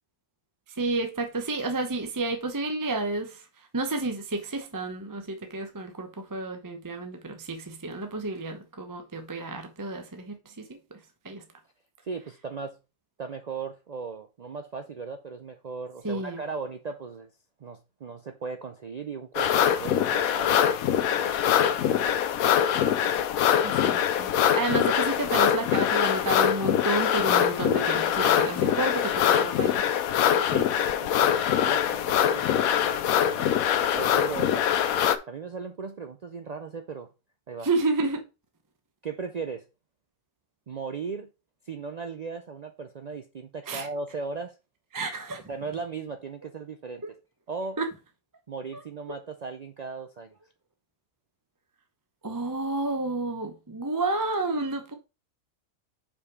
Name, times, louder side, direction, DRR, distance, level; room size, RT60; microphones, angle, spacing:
voice 1, 0.8-3.4 3.7-11.0 11.2-11.4 16.0-16.4 23.6-29.8 37.6-38.2 43.7-43.9 44.9-45.4 47.8-47.9 52.2-54.9, right 2 dB, 20° right, 0.7 m, -30 dB
voice 2, 12.0-12.8 13.2-17.3 17.6-20.7 21.1-22.4 30.5-30.7 31.0-31.3 31.6-32.5 32.8-34.7 35.3-37.1 37.5-37.7 39.0-39.7 40.7-41.3 41.7-44.5 45.5-47.0 47.5-47.8 48.5-50.3, right 5 dB, 80° right, 0.3 m, -37 dB
sound 1, 19.3-35.2, left 9 dB, 75° left, 1.0 m, -23 dB
5.4 x 4.9 x 4.7 m
omnidirectional pair, 1.5 m